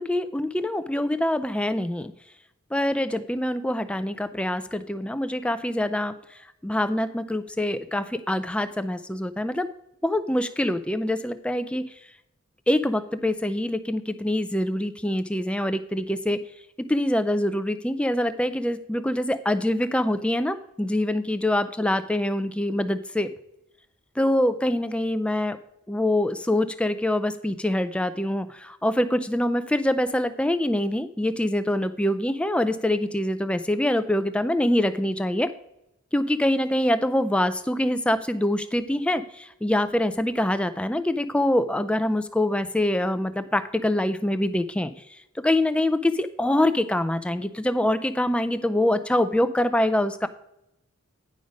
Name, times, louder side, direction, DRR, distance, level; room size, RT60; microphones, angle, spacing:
voice 1, 0.0-2.1 2.7-9.7 10.0-11.8 12.7-16.4 16.9-23.3 24.2-25.6 25.9-35.5 36.1-44.9 45.4-50.3, left 1 dB, 5° left, 11 dB, 0.4 m, -25 dB
9.5 x 5.3 x 5.1 m, 0.82 s
head